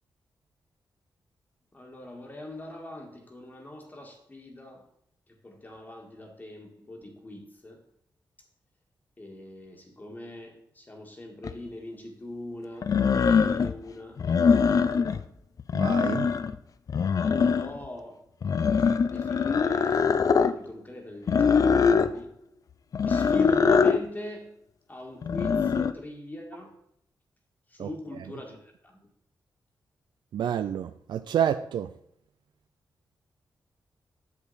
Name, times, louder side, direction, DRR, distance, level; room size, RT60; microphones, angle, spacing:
voice 1, 1.7-4.9 5.3-7.8 9.2-15.2 17.1-18.2 19.0-22.3 23.0-24.6 24.9-26.8 27.7-29.1, left 1 dB, 25° left, 1.6 m, -42 dB
sound 1, 11.4-11.5 12.8-13.7 14.2-15.2 15.6-16.5 16.9-17.9 18.4-20.5 21.3-22.1 22.9-24.0 25.2-25.9, left 6 dB, 50° left, 0.5 m, -23 dB
voice 2, 15.7-16.3 27.8-27.9 30.3-31.9, right 9 dB, 90° right, 0.4 m, -28 dB
8.3 x 7.0 x 4.1 m
wide cardioid pair, 110°, 8 cm